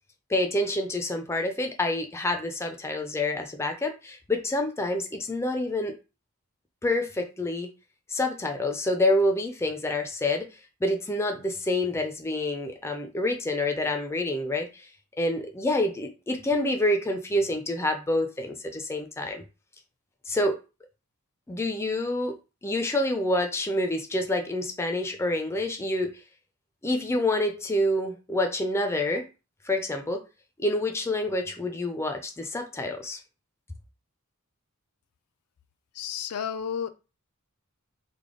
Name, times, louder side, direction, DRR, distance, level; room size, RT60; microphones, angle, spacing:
voice 1, 0.3-5.9 6.8-7.7 8.1-10.5 10.8-14.9 15.2-19.4 20.3-20.6 21.5-22.4 22.6-26.1 26.8-29.2 29.6-30.2 30.6-33.2, left 1 dB, 10° left, 0.4 m, -27 dB
voice 2, 36.0-36.9, left 8 dB, 90° left, 0.4 m, -31 dB
3.3 x 2.1 x 3.7 m
head